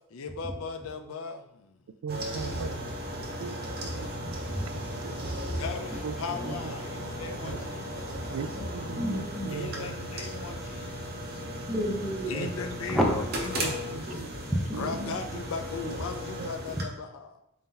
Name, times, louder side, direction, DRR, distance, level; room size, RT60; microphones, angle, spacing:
voice 1, 0.0-1.8 5.6-7.9 8.3-8.4 9.5-11.0 11.3-11.4 12.3-13.8 14.0-14.2 14.8-17.4, left 5 dB, 70° left, 7 dB, 0.4 m, -38 dB
voice 2, 2.0-2.7 3.4-3.7 3.9-4.1 4.7-5.2 6.0-6.1 6.4-6.7 7.4-7.6 8.3-10.1 12.3-12.5 13.6-14.3 14.7-15.4 15.8-16.0 16.4-16.5, right 6 dB, 85° right, 11 dB, 0.3 m, -39 dB
sound 1, 2.1-16.8, equal, 45° right, 0.7 m, -36 dB
voice 3, 4.0-4.8 6.3-6.6 8.5-8.7 9.0-9.5 11.7-12.5 12.9-13.2 14.7-15.1, equal, ahead, -1 dB, 0.5 m, -31 dB
4.1 x 2.7 x 3.8 m, 0.80 s
head